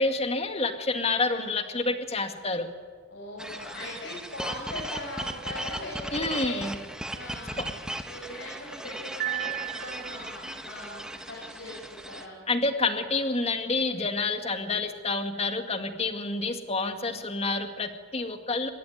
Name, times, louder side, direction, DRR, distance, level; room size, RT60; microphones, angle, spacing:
voice 1, 0.0-2.7 6.1-6.7 12.5-18.7, left 3 dB, 30° left, 6 dB, 2.1 m, -28 dB
voice 2, 3.1-6.6 7.1-7.8 8.1-12.4, left 1 dB, 65° left, -2 dB, 6.5 m, -40 dB
sound 1, 3.4-12.3, right 1 dB, 5° right, 1.4 m, -37 dB
Piano, 9.2-10.5, right 18 dB, 50° right, 1.6 m, -34 dB
25.5 x 22.0 x 9.5 m, 1.5 s
head